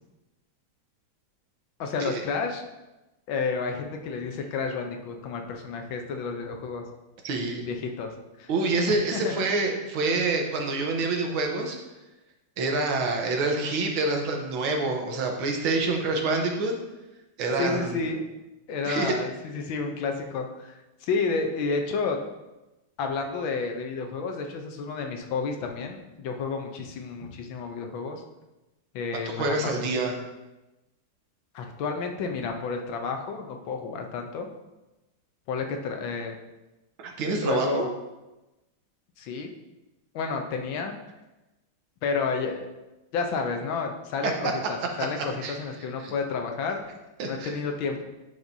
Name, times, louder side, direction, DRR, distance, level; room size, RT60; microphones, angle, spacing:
voice 1, 1.8-2.6 3.3-6.8 7.6-8.1 8.4-8.5 9.1-9.3 17.6-18.2 18.7-20.7 21.0-22.2 23.0-28.2 28.9-29.7 31.5-34.5 35.5-36.4 37.4-37.9 39.2-39.5 40.1-40.9 42.0-42.7 43.1-46.8 47.3-48.0, left 4 dB, 75° left, 4 dB, 1.5 m, -30 dB
voice 2, 7.2-7.7 8.5-11.8 12.6-16.7 17.4-18.0 18.8-19.2 29.2-30.1 37.0-37.9 44.2-44.3 45.2-45.6 46.0-46.1 47.2-47.5, right 3 dB, 85° right, 2 dB, 1.8 m, -27 dB
10.5 x 5.2 x 2.7 m, 1.0 s
omnidirectional pair, 2.2 m